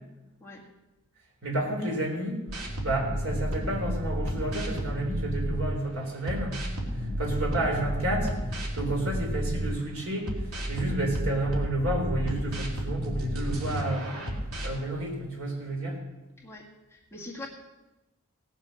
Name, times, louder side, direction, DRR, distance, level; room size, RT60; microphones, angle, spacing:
voice 1, 1.4-2.4 2.8-6.6 6.9-14.2 14.6-16.0, right 1 dB, 65° right, 0 dB, 4.1 m, -31 dB
sound 1, 2.5-5.8 6.3-9.8 10.3-14.7, equal, 85° right, 3.0 m, -32 dB
voice 2, 16.4-17.5, left 2 dB, 10° left, -2 dB, 1.8 m, -43 dB
18.0 x 7.5 x 6.4 m, 1.0 s
head